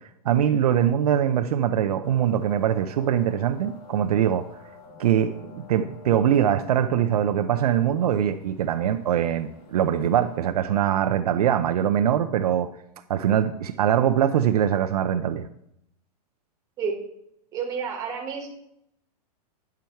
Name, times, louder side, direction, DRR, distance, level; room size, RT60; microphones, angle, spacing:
voice 1, 0.3-4.5 5.0-12.7 13.1-15.5, right 10 dB, 65° right, 8 dB, 0.5 m, -22 dB
sound 1, 2.0-10.5, left 4 dB, 30° left, 1.4 m, -47 dB
voice 2, 17.5-18.5, right 6 dB, 15° right, 1 dB, 1.4 m, -30 dB
10.5 x 5.9 x 4.5 m, 0.76 s
supercardioid pair, 170°, 21 cm